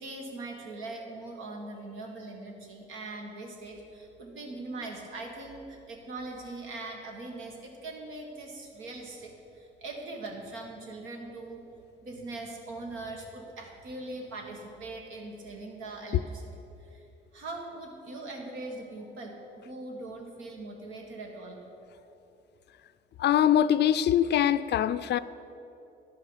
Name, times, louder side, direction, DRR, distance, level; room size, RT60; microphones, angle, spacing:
voice 1, 0.0-11.6 12.0-16.5 16.8-17.0 17.3-21.6, right 2 dB, 90° right, 1.7 m, -41 dB
voice 2, 23.2-25.2, left 10 dB, 60° left, 0.4 m, -23 dB
10.5 x 5.6 x 7.3 m
cardioid pair, 90°, 20 cm